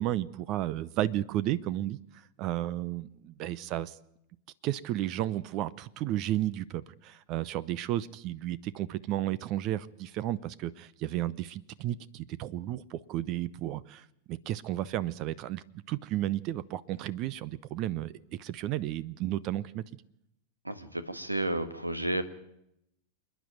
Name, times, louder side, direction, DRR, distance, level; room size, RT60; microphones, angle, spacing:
voice 1, 0.0-2.0 2.4-3.9 4.6-19.8, right 13 dB, 40° right, 0.7 m, -33 dB
voice 2, 20.6-22.2, right 1 dB, 85° right, 1.5 m, -32 dB
28.0 x 10.5 x 9.3 m
figure-of-eight pair, 90°, 0 cm